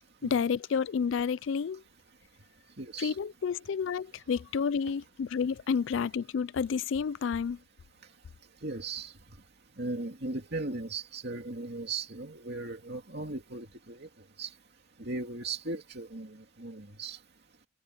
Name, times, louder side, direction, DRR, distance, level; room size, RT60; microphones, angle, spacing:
voice 1, 0.2-1.8 3.0-7.6, left 6 dB, 70° left, 0.4 m, -30 dB
voice 2, 2.2-3.2 7.9-17.3, right 3 dB, 55° right, 2.6 m, -39 dB
head